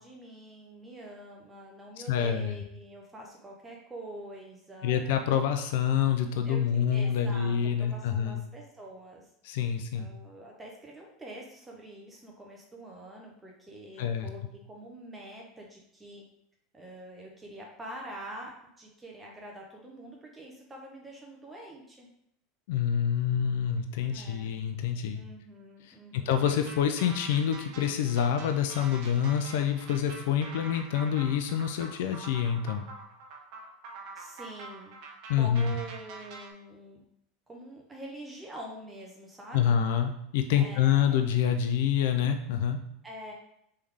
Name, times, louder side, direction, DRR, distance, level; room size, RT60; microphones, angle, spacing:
voice 1, 0.0-5.0 6.5-9.3 9.9-16.2 16.7-22.1 24.0-24.5 25.1-26.6 34.2-34.9 35.4-37.0 37.5-39.8 40.6-41.3 43.0-43.3, right 1 dB, 15° right, -1 dB, 0.7 m, -45 dB
voice 2, 2.1-2.6 4.8-8.4 9.4-10.1 14.0-14.3 22.7-25.2 25.8-32.9 35.3-35.8 39.5-42.8, left 8 dB, 75° left, 7 dB, 0.4 m, -27 dB
sound 1, 26.4-36.5, right 3 dB, 60° right, 0.8 m, -45 dB
3.5 x 3.3 x 3.4 m, 0.75 s
supercardioid pair, 105°, 0 cm